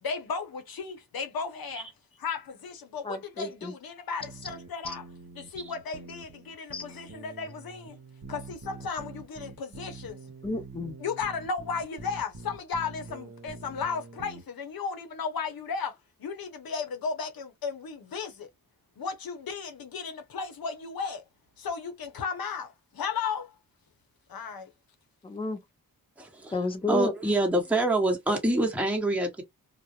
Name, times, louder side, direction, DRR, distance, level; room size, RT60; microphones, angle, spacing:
voice 1, 0.0-1.9 2.2-5.1 5.4-8.0 8.3-10.2 11.0-18.5 19.0-21.2 21.6-23.5 24.3-24.7, left 5 dB, 75° left, 0.8 m, -35 dB
voice 2, 3.0-3.7 6.7-6.8 10.4-11.0 25.2-25.6 26.5-27.1, left 2 dB, 15° left, 0.6 m, -31 dB
sound 1, 4.2-14.4, right 4 dB, 45° right, 0.7 m, -46 dB
voice 3, 26.2-26.6 26.9-29.4, right 2 dB, 5° right, 0.9 m, -26 dB
2.3 x 2.0 x 2.8 m
cardioid pair, 65°, 36 cm